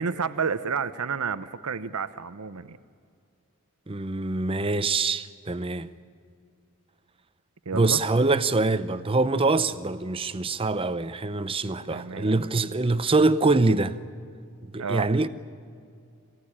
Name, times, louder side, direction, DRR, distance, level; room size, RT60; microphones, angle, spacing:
voice 1, 0.0-2.8 7.7-8.0 11.9-12.3 14.8-15.1, right 5 dB, 90° right, 0.8 m, -30 dB
voice 2, 3.9-5.9 7.7-14.0 14.7-15.3, right 3 dB, 25° right, 0.7 m, -24 dB
23.5 x 17.0 x 10.0 m
head